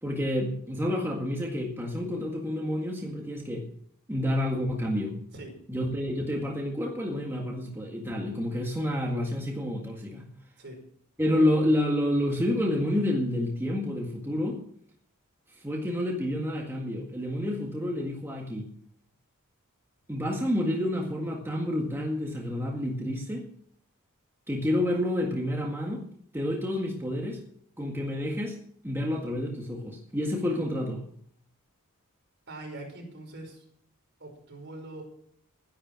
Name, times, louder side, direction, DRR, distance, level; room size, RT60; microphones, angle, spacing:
voice 1, 0.0-3.7 4.1-5.2 5.7-10.3 11.2-14.6 15.5-18.7 20.1-23.5 24.5-26.1 26.3-27.4 27.8-28.6 28.8-31.0, left 1 dB, 10° right, 0 dB, 1.9 m, -29 dB
voice 2, 32.5-33.6 34.2-35.0, right 2 dB, 55° right, 3 dB, 5.4 m, -42 dB
12.5 x 11.0 x 6.2 m, 0.64 s
head